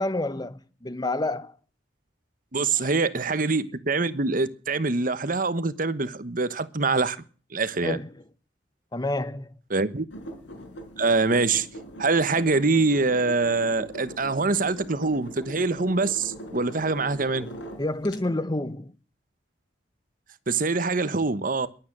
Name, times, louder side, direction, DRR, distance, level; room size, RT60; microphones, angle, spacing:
voice 1, 0.0-1.6 2.8-2.9 7.8-8.2 8.9-9.5 17.8-19.0, left 2 dB, 20° left, 0.9 m, -29 dB
voice 2, 2.5-7.2 7.5-8.0 9.7-10.0 11.0-11.7 12.0-17.5 20.5-21.7, right 3 dB, 50° right, 1.1 m, -24 dB
sound 1, 10.1-18.2, equal, 85° left, 5.4 m, -41 dB
22.0 x 8.9 x 6.1 m
head